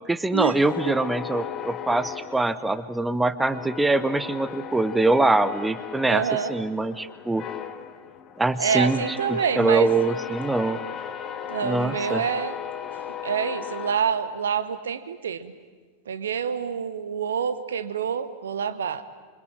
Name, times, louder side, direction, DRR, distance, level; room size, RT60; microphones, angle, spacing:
voice 1, 0.1-7.4 8.4-10.8 11.6-12.2, right 2 dB, 5° right, 14 dB, 0.9 m, -23 dB
sound 1, 0.6-3.1 3.5-14.7, left 9 dB, 30° left, 1.6 m, -36 dB
voice 2, 6.1-6.5 8.6-9.9 11.5-12.5 13.2-15.5 16.1-19.0, right 7 dB, 65° right, 13 dB, 1.3 m, -27 dB
27.0 x 24.5 x 8.9 m, 1.5 s
figure-of-eight pair, 90°, 0 cm